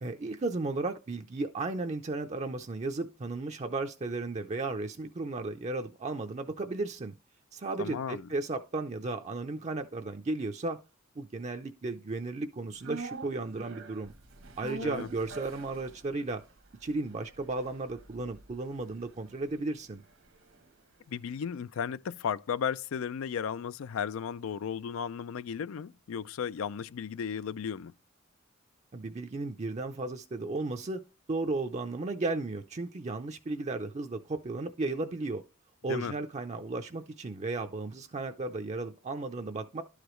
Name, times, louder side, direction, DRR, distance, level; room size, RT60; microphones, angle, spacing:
voice 1, 0.0-7.1 7.5-10.8 11.2-14.1 14.6-16.4 16.8-20.0 28.9-31.0 31.3-35.4 35.8-39.8, right 3 dB, 35° right, 0.5 m, -34 dB
voice 2, 7.8-8.3 14.8-15.1 21.1-27.9 35.9-36.1, left 7 dB, 70° left, 0.4 m, -35 dB
sound 1, 12.8-21.1 21.4-21.5, right 3 dB, 65° right, 1.0 m, -46 dB
12.0 x 4.9 x 3.0 m
head